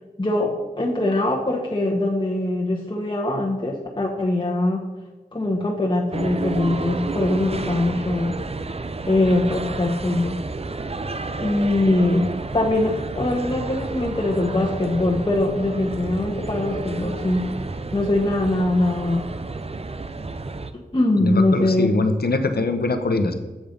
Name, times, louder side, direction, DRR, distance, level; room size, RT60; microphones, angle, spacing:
voice 1, 0.2-4.8 5.3-8.3 9.1-10.4 11.4-17.5 17.9-19.2 20.7-21.9, left 1 dB, 30° left, -3 dB, 1.2 m, -22 dB
sound 1, 6.1-20.7, right 3 dB, 40° right, 0.6 m, -31 dB
voice 2, 21.2-23.3, left 2 dB, 80° left, 8 dB, 0.9 m, -22 dB
7.6 x 7.1 x 5.3 m, 1.2 s
wide cardioid pair, 70°, 16 cm